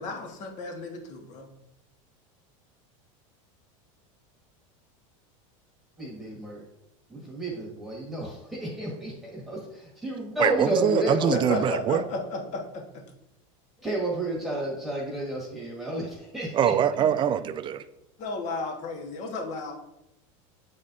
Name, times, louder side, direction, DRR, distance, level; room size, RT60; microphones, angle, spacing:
voice 1, 0.0-1.5 11.5-13.0 18.2-19.7, left 3 dB, 45° left, 1.3 m, -33 dB
voice 2, 6.0-6.6 7.1-11.6 13.8-16.7, right 1 dB, ahead, 1.6 m, -31 dB
voice 3, 10.4-12.0 16.5-17.8, right 9 dB, 30° right, 0.3 m, -24 dB
8.7 x 4.2 x 2.6 m
supercardioid pair, 125°, 17 cm